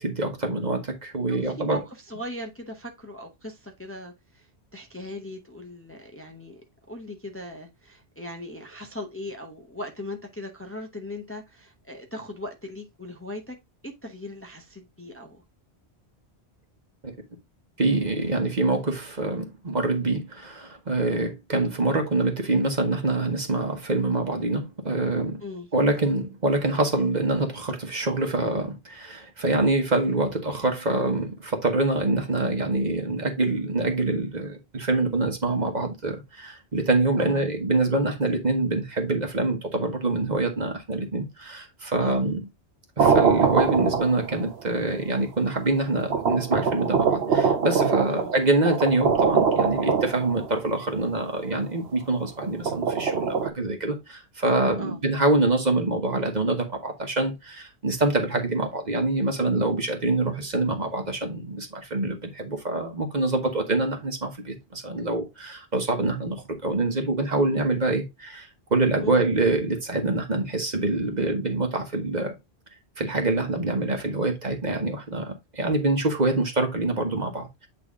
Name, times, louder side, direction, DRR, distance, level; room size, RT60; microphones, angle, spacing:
voice 1, 0.0-1.8 17.0-17.1 17.8-25.4 25.7-42.4 43.0-72.4 73.0-77.7, right 2 dB, 40° right, 1.4 m, -25 dB
voice 2, 1.3-13.6 13.8-15.4 25.4-25.7 37.2-37.4 42.0-42.3 48.1-48.3 54.8-55.0 69.0-69.2, left 1 dB, 15° left, 0.8 m, -38 dB
sound 1, 43.0-44.5 45.4-45.5 46.1-50.6 52.4-53.5, right 6 dB, 70° right, 1.1 m, -23 dB
8.4 x 3.3 x 3.6 m
omnidirectional pair, 1.1 m